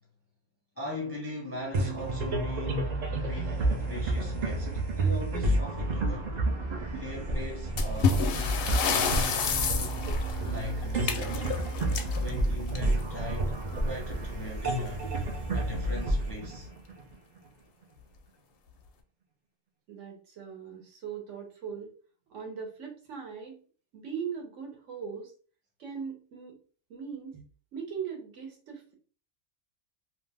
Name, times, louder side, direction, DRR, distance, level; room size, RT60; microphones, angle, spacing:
voice 1, 0.8-6.4 6.9-9.5 10.4-11.5 12.1-15.1 15.5-16.7, left 1 dB, 15° left, 0.5 m, -40 dB
sound 1, 1.7-17.4, right 2 dB, 55° right, 0.4 m, -30 dB
sound 2, 7.8-13.2 14.4-14.6 14.9-15.0 15.6-15.7 16.4-16.7, left 6 dB, 60° left, 0.6 m, -30 dB
voice 2, 19.9-21.9 22.3-23.6 23.9-25.3 25.8-26.6 26.9-27.4 27.7-28.9, right 6 dB, 70° right, 1.1 m, -39 dB
2.7 x 2.1 x 3.3 m
omnidirectional pair, 1.3 m